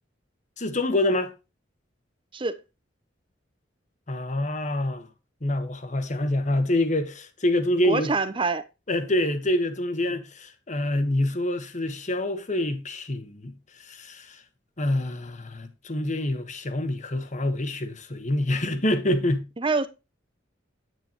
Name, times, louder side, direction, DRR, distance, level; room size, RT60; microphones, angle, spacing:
voice 1, 0.6-1.3 4.1-5.1 5.4-8.1 8.9-13.5 13.8-14.4 14.8-19.4, left 1 dB, 40° left, 1.3 m, -26 dB
voice 2, 7.8-8.6 19.6-19.9, right 4 dB, 25° right, 0.8 m, -25 dB
9.3 x 9.1 x 3.0 m
head